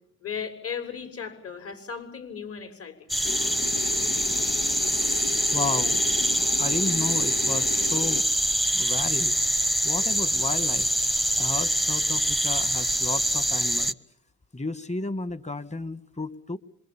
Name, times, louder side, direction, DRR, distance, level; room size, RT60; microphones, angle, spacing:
voice 1, 0.2-3.1 6.3-6.5, left 6 dB, 50° left, 9 dB, 6.8 m, -36 dB
sound 1, 3.1-13.9, right 1 dB, ahead, 0.9 m, -24 dB
sound 2, 3.2-8.2, left 8 dB, 90° left, 1.4 m, -36 dB
voice 2, 5.5-6.0 6.4-8.3 8.7-9.4 9.8-10.9 11.4-14.0 14.5-16.6, left 3 dB, 20° left, 14 dB, 1.9 m, -33 dB
26.5 x 23.5 x 7.3 m, 0.70 s
cardioid pair, 90°, 30 cm